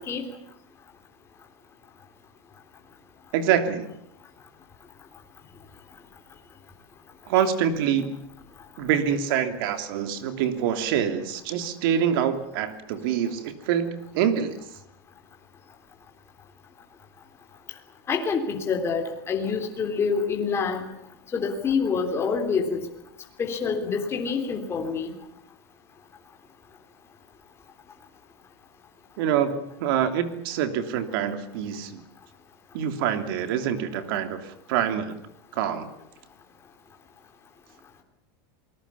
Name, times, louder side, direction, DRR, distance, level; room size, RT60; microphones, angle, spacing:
voice 1, 3.3-3.9 7.3-8.2 8.8-14.6 29.2-32.0 32.7-35.2 35.5-35.9, right 9 dB, 65° right, 9 dB, 3.2 m, -25 dB
voice 2, 18.1-20.9 21.3-22.8 23.4-25.1, left 5 dB, 20° left, 2 dB, 3.5 m, -26 dB
28.0 x 20.0 x 7.1 m, 0.79 s
supercardioid pair, 150°, 13 cm